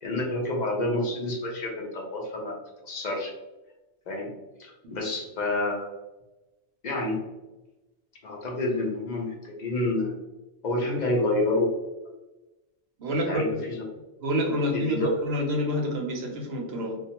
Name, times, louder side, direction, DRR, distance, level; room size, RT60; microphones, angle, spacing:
voice 1, 0.0-2.6 2.8-3.3 4.1-4.3 4.6-5.9 6.8-7.2 8.2-10.1 10.6-11.7 13.1-13.8 14.7-15.1, left 2 dB, 55° left, 0 dB, 0.5 m, -28 dB
voice 2, 13.0-13.6 14.2-17.0, equal, 65° right, 0 dB, 0.8 m, -28 dB
2.2 x 2.1 x 2.8 m, 1.0 s
omnidirectional pair, 1.2 m